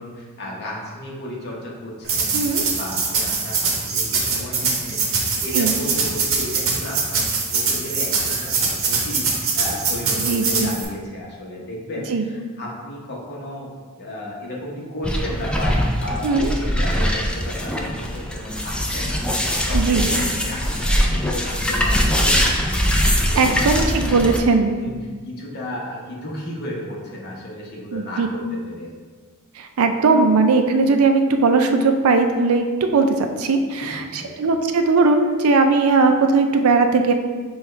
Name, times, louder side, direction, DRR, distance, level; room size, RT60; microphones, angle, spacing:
voice 1, 0.0-24.3 24.8-25.0 25.3-28.9 33.6-34.4, left 1 dB, 50° left, -4 dB, 1.0 m, -34 dB
sound 1, 2.0-10.8, right 4 dB, 65° right, 0.8 m, -23 dB
voice 2, 2.3-2.6 5.5-5.7 10.2-10.7 12.1-12.2 16.2-16.5 19.7-20.1 23.4-24.8 27.9-28.3 29.6-37.1, right 3 dB, 90° right, 6 dB, 0.4 m, -18 dB
sound 2, 15.0-24.4, equal, 5° left, 0.3 m, -22 dB
6.0 x 2.3 x 3.3 m, 1.5 s
head